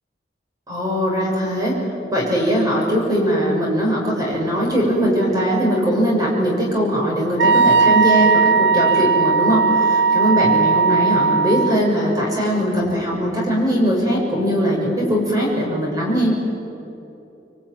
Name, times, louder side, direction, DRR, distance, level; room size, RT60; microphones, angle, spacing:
voice 1, 0.7-1.8 2.1-16.3, equal, 20° right, -2 dB, 6.1 m, -20 dB
Wind instrument woodwind instrument, 7.4-11.8, right 5 dB, 75° right, 0.6 m, -17 dB
26.5 x 23.5 x 9.2 m, 2.8 s
head